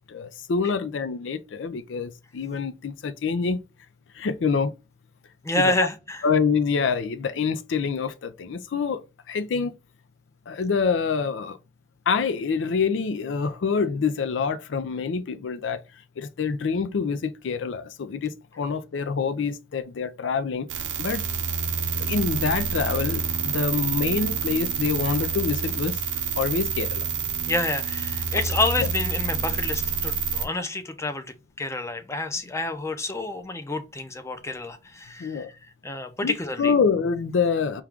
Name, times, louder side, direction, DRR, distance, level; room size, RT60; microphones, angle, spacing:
voice 1, 0.1-3.6 4.1-4.7 5.6-5.9 6.2-9.7 10.5-11.6 12.1-15.8 16.2-20.7 21.0-21.2 22.0-26.0 26.4-27.1 28.3-28.4 28.8-28.9 35.2-35.5 36.2-37.8, left 5 dB, 85° left, 0.4 m, -26 dB
voice 2, 5.4-6.2 27.5-31.3 31.6-35.5 35.8-36.7, left 2 dB, 15° left, 0.5 m, -28 dB
sound 1, 20.7-30.4, right 6 dB, 85° right, 0.7 m, -28 dB
4.6 x 2.3 x 3.6 m
head